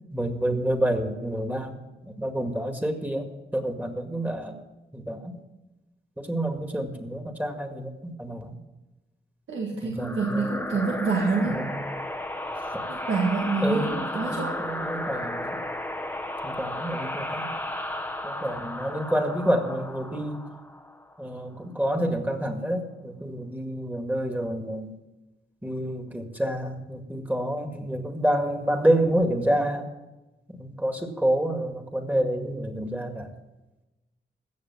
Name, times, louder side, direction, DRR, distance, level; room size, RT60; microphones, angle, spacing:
voice 1, 0.1-1.7 2.1-3.3 3.5-4.6 4.9-5.4 6.2-8.6 9.8-10.5 11.1-11.8 12.7-12.8 13.6-15.6 16.4-17.5 18.2-20.4 21.2-25.0 25.6-29.9 30.5-33.3, right 1 dB, 10° right, 5 dB, 2.1 m, -28 dB
voice 2, 9.5-11.5 12.9-14.5, right 4 dB, 90° right, -2 dB, 1.9 m, -27 dB
sound 1, 10.0-21.3, left 1 dB, 10° left, 0.9 m, -34 dB
16.0 x 6.8 x 7.4 m, 1.1 s
cardioid pair, 70°, 19 cm